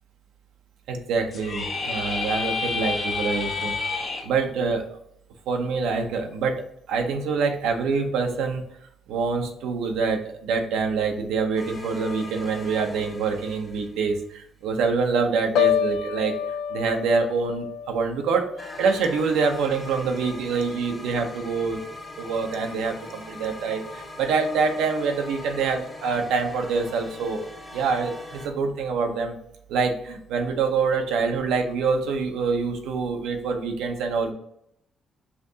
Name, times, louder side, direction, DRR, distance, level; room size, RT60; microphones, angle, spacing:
voice 1, 0.9-3.7 4.2-5.0 5.5-6.6 6.9-8.6 9.1-16.3 16.7-21.8 22.2-27.5 27.7-29.4 29.7-34.3, right 4 dB, 90° right, 4 dB, 0.7 m, -25 dB
sound 1, 1.3-4.2, left 4 dB, 60° left, 1.5 m, -28 dB
sound 2, 11.6-14.3 18.6-28.5, left 2 dB, 20° left, 1.0 m, -41 dB
Piano, 15.6-19.5 19.9-20.3, left 9 dB, 85° left, 0.4 m, -28 dB
5.7 x 2.7 x 2.8 m, 0.73 s
cardioid pair, 90°, 0 cm